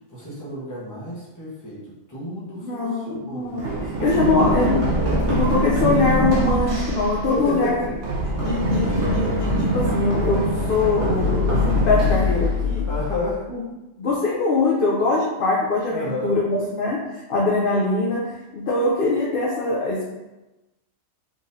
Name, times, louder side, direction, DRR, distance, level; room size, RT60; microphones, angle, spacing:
voice 1, 0.1-1.8 2.1-2.9 3.2-3.6 4.2-4.7 5.0-5.4 7.3-7.9 12.9-13.4 15.9-16.3, left 1 dB, 15° left, -7 dB, 0.9 m, -30 dB
voice 2, 2.5-4.8 5.3-7.9 8.4-12.9 14.0-20.0, left 3 dB, 55° left, -4 dB, 0.6 m, -23 dB
Run, 3.6-13.3, equal, 65° right, 1.2 m, -23 dB
3.8 x 3.0 x 2.6 m, 1.1 s
omnidirectional pair, 1.4 m